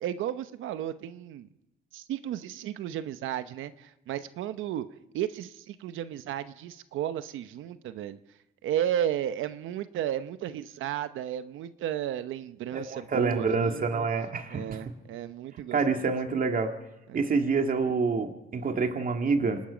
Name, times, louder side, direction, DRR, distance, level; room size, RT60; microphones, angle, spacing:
voice 1, 0.0-1.5 1.9-4.9 5.1-8.2 8.6-14.1 14.5-16.0 17.1-17.2, right 11 dB, 85° right, 12 dB, 0.8 m, -33 dB
voice 2, 12.7-14.8 15.7-16.7 17.1-19.6, right 4 dB, 45° right, 5 dB, 2.0 m, -27 dB
27.0 x 19.0 x 5.1 m, 0.97 s
cardioid pair, 90°, 20 cm